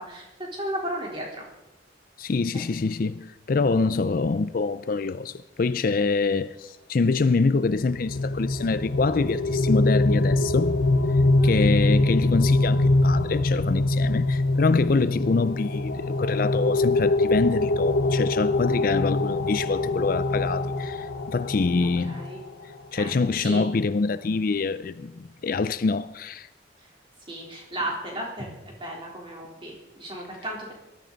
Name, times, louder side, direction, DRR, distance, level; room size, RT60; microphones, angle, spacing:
voice 1, 0.0-1.4 2.5-2.6 11.4-11.6 21.8-22.4 22.9-23.6 27.3-30.7, right 1 dB, 25° right, 3.6 m, -35 dB
voice 2, 2.2-10.8 11.4-22.3 22.9-26.5, left 4 dB, 45° left, 0.4 m, -25 dB
sound 1, 7.7-22.4, left 2 dB, 90° left, 1.2 m, -24 dB
19.5 x 13.5 x 4.0 m
head